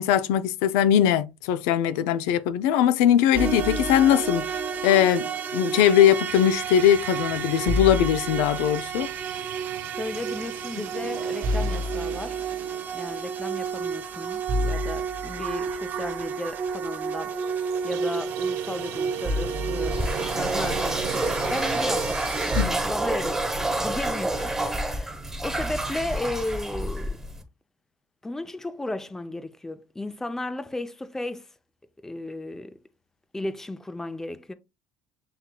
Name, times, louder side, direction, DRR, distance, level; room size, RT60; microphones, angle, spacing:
voice 1, 0.0-5.3 5.5-9.1 22.6-22.7, left 10 dB, 90° left, 0.4 m, -21 dB
sound 1, 3.3-22.6, right 4 dB, 40° right, 1.2 m, -30 dB
sound 2, 5.3-22.2, right 12 dB, 75° right, 0.4 m, -41 dB
voice 2, 10.0-12.4 12.9-17.4 17.8-23.4 23.7-25.2 25.4-27.2 28.2-31.5 32.0-32.8 33.3-34.5, left 2 dB, 10° left, 0.5 m, -34 dB
sound 3, 19.8-27.4, right 1 dB, 10° right, 1.0 m, -28 dB
7.5 x 2.8 x 2.2 m
cardioid pair, 115°, 5 cm